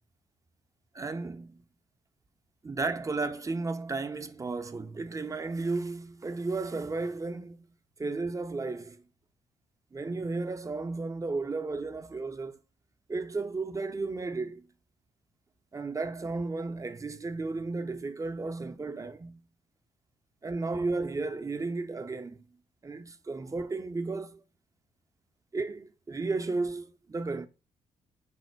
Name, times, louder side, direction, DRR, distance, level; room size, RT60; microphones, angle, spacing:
voice 1, 0.9-1.6 2.6-7.7 8.0-9.0 9.9-12.6 13.1-14.6 15.7-19.4 20.4-22.4 22.8-24.4 25.5-27.5, right 3 dB, 20° right, 0.5 m, -33 dB
4.2 x 2.1 x 4.4 m
hypercardioid pair, 45°, 15 cm